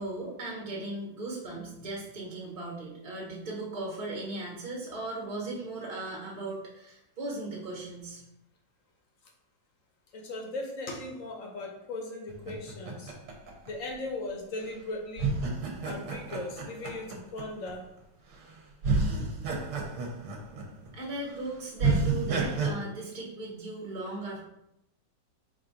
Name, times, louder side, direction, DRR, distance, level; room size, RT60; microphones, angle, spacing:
voice 1, 0.0-8.2 20.5-20.6 20.9-24.4, right 2 dB, 20° right, -4 dB, 1.0 m, -37 dB
voice 2, 10.1-13.1 13.7-15.3 15.8-17.8, left 2 dB, 60° left, 1 dB, 0.9 m, -38 dB
sound 1, 12.3-14.3 15.2-17.7 18.3-18.5 18.8-20.9 21.3-21.4 21.8-22.7, right 3 dB, 65° right, 1.3 m, -30 dB
4.1 x 2.6 x 4.7 m, 0.83 s
omnidirectional pair, 2.0 m